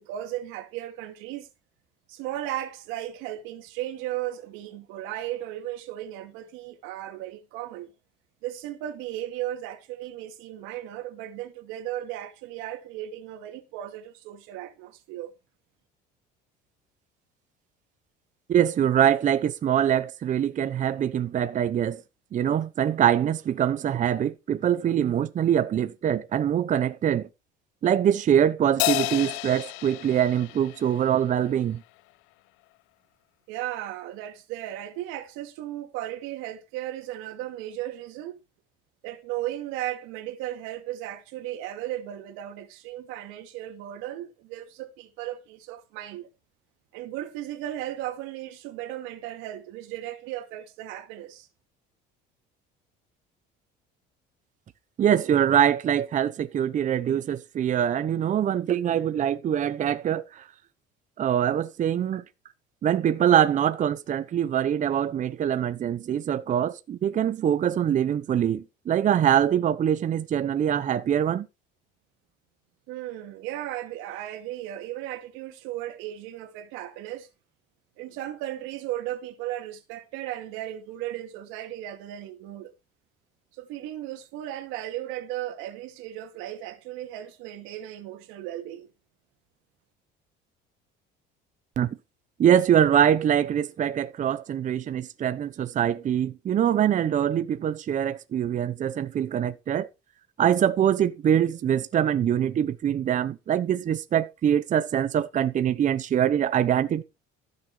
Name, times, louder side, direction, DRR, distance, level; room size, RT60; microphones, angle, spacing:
voice 1, 0.0-1.5 2.1-7.9 8.4-15.3 33.5-38.3 39.0-46.3 46.9-51.5 72.9-77.3 78.0-82.7 83.5-88.9, right 13 dB, 85° right, 2.4 m, -36 dB
voice 2, 18.5-22.0 22.3-27.3 27.8-31.8 55.0-60.5 61.2-62.2 62.8-71.5 91.8-91.9 92.4-99.9 100.4-107.0, right 9 dB, 40° right, 0.9 m, -24 dB
Crash cymbal, 28.8-31.5, left 23 dB, 90° left, 0.7 m, -30 dB
15.0 x 6.9 x 4.9 m
cardioid pair, 120°, 20 cm